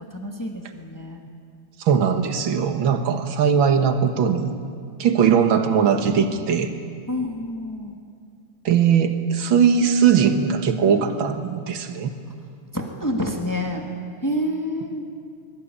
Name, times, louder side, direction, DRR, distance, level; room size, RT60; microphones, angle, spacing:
voice 1, 0.1-1.2 7.1-7.9 12.7-13.9 14.2-15.1, left 1 dB, 10° left, 2 dB, 1.6 m, -28 dB
voice 2, 1.8-4.5 5.0-6.7 8.7-12.1, right 7 dB, 50° right, 7 dB, 1.9 m, -19 dB
24.0 x 22.0 x 8.6 m, 2.3 s
omnidirectional pair, 3.5 m